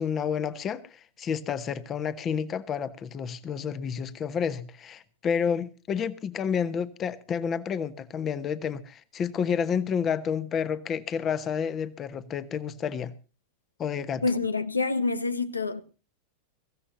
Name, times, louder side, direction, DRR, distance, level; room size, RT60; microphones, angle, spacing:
voice 1, 0.0-13.1 13.8-14.2, left 7 dB, 25° left, 1.2 m, -30 dB
voice 2, 14.2-15.8, left 3 dB, 80° left, 1.0 m, -27 dB
23.5 x 15.5 x 2.7 m
figure-of-eight pair, 90°, 0 cm